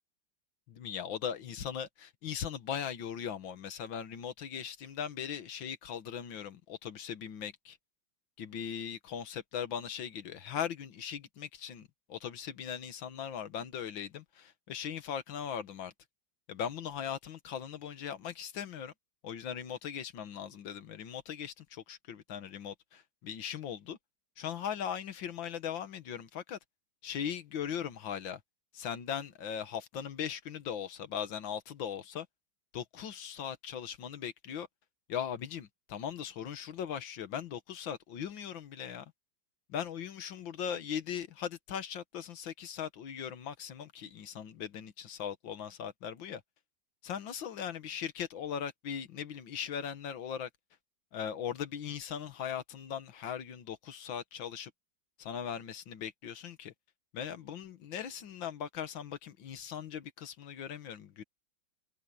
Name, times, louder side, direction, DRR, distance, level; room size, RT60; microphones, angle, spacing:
voice 1, 0.8-7.8 8.4-15.9 16.5-18.9 19.2-24.0 24.4-26.6 27.0-28.4 28.7-32.3 32.7-34.7 35.1-39.1 39.7-46.4 47.0-50.5 51.1-54.7 55.2-56.7 57.1-61.2, left 8 dB, 80° left, 2.0 m, -39 dB
omnidirectional pair, 2.1 m